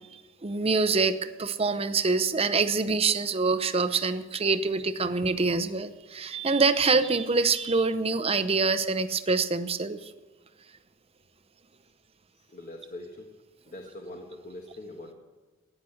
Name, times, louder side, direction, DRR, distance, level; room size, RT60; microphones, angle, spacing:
voice 1, 0.1-10.1, right 4 dB, 30° right, 11 dB, 0.7 m, -25 dB
voice 2, 12.3-13.3 13.6-15.1, left 1 dB, 45° left, 2 dB, 1.5 m, -43 dB
14.5 x 10.0 x 7.9 m, 1.2 s
head